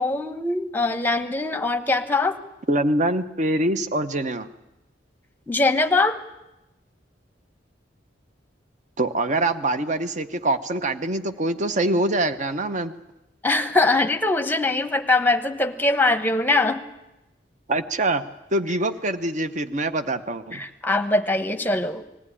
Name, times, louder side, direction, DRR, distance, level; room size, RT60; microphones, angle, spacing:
voice 1, 0.0-2.4 5.5-6.2 13.4-16.8 20.5-22.0, left 2 dB, 10° left, 9 dB, 1.0 m, -22 dB
voice 2, 2.7-4.5 9.0-12.9 17.7-18.2 18.5-20.6, right 2 dB, 40° right, 11 dB, 0.8 m, -24 dB
20.0 x 15.0 x 9.9 m, 0.95 s
head